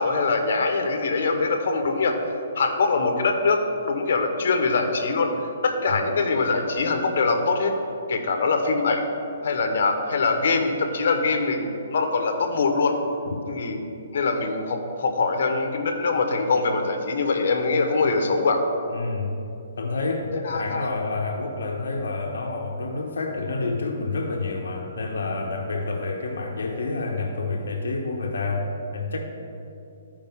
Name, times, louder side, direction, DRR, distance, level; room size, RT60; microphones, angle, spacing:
voice 1, 0.0-2.2 2.6-3.6 3.8-5.3 5.6-7.8 8.1-9.2 9.4-13.0 13.5-13.8 14.1-18.6 20.3-20.9, left 4 dB, 60° left, 5 dB, 1.1 m, -23 dB
voice 2, 18.9-19.4 19.8-29.2, left 3 dB, 85° left, 1 dB, 0.9 m, -28 dB
13.5 x 5.1 x 3.6 m, 2.7 s
hypercardioid pair, 155°, 0 cm